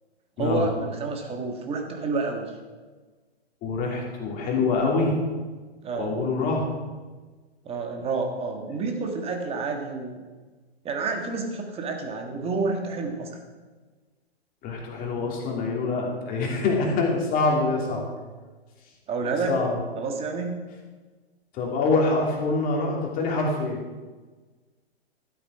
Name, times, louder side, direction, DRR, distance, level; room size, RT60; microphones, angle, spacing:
voice 1, 0.4-2.5 5.8-6.2 7.7-10.2 10.9-13.3 19.1-19.6 20.0-20.6, right 4 dB, 20° right, 3 dB, 1.6 m, -29 dB
voice 2, 3.6-5.2 5.9-6.7 8.7-8.8 14.6-18.1 19.5-19.8 21.5-23.8, left 3 dB, 25° left, -1 dB, 2.6 m, -25 dB
13.0 x 7.8 x 4.8 m, 1.3 s
hypercardioid pair, 120°, 32 cm